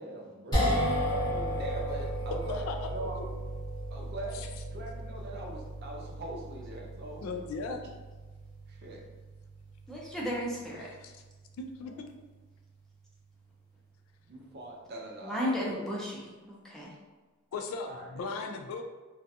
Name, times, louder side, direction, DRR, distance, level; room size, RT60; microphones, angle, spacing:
voice 1, 0.0-3.2 3.9-7.5 8.7-9.0 11.8-12.0 14.2-15.9 17.8-18.5, right 2 dB, 50° right, -1 dB, 0.5 m, -42 dB
sound 1, 0.5-12.8, equal, 20° left, 0.8 m, -35 dB
voice 2, 2.3-3.2 4.3-4.5 7.2-7.8 10.8-11.1 11.6-12.1 17.5-18.8, left 4 dB, 70° left, 6 dB, 0.3 m, -38 dB
voice 3, 9.9-10.9 15.2-16.2 16.5-16.9, equal, 5° left, -5 dB, 0.5 m, -34 dB
2.4 x 2.3 x 2.6 m, 1.2 s
head